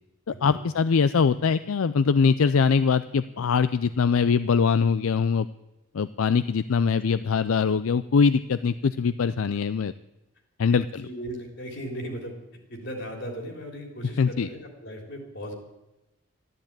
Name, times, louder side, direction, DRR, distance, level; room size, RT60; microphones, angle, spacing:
voice 1, 0.4-5.5 5.9-9.9 10.6-11.0 14.2-14.5, left 5 dB, 80° left, 14 dB, 0.4 m, -22 dB
voice 2, 10.7-12.4 12.7-15.5, equal, 55° left, 2 dB, 3.5 m, -37 dB
13.0 x 12.5 x 8.9 m, 0.97 s
head